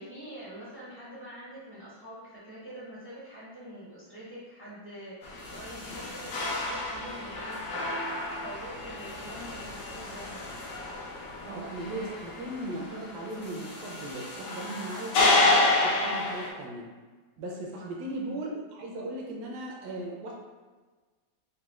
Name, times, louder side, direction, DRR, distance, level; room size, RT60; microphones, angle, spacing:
voice 1, 0.0-10.8 17.8-18.1, equal, 25° right, -9 dB, 0.4 m, -45 dB
sound 1, 5.2-16.5, left 2 dB, 85° left, 1.5 m, -30 dB
sound 2, 8.3-13.8, left 2 dB, 70° left, 0.8 m, -49 dB
voice 2, 11.5-16.9 17.4-20.3, right 1 dB, 70° right, -2 dB, 1.1 m, -37 dB
4.2 x 2.2 x 3.5 m, 1.3 s
omnidirectional pair, 2.0 m